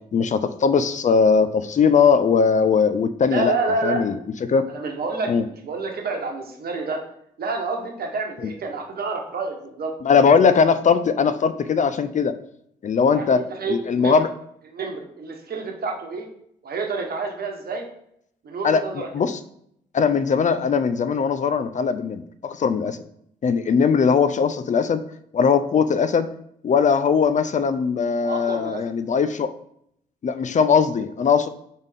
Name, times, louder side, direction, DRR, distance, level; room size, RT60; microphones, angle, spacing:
voice 1, 0.1-3.5 3.8-4.7 5.3-5.4 8.4-8.5 10.0-12.3 12.8-14.3 18.6-19.4 19.9-23.0 23.4-25.0 25.3-26.3 26.6-29.5 30.2-31.5, left 6 dB, 45° left, 11 dB, 0.4 m, -20 dB
voice 2, 3.3-4.0 4.7-7.0 7.4-9.9 13.1-14.2 14.7-16.3 16.6-17.9 18.4-19.1 28.2-28.8, right 3 dB, 60° right, 2 dB, 1.1 m, -28 dB
4.1 x 3.5 x 3.4 m, 0.71 s
hypercardioid pair, 45°, 18 cm